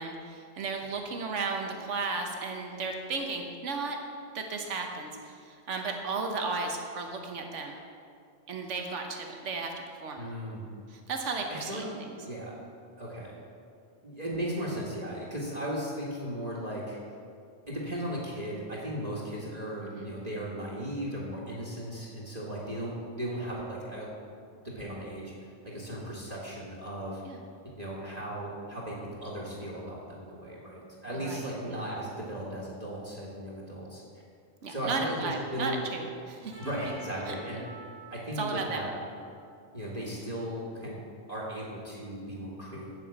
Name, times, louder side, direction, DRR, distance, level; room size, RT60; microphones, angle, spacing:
voice 1, 0.0-4.0 4.3-7.8 8.5-10.3 10.9-12.1 19.8-20.1 27.2-27.4 31.1-31.4 31.7-31.8 34.6-36.7 37.3-37.4 38.4-38.9, right 4 dB, 90° right, 3 dB, 1.3 m, -34 dB
voice 2, 10.2-10.7 11.5-11.8 12.2-12.5 13.0-13.4 14.0-17.0 17.7-24.1 24.6-27.4 27.8-34.0 34.7-35.8 36.4-37.6 38.1-38.9 39.7-41.0 41.3-42.9, equal, 35° right, -6 dB, 1.8 m, -36 dB
Trumpet, 36.5-40.6, right 2 dB, 15° right, 1.9 m, -50 dB
8.3 x 6.9 x 8.2 m, 2.3 s
omnidirectional pair, 1.2 m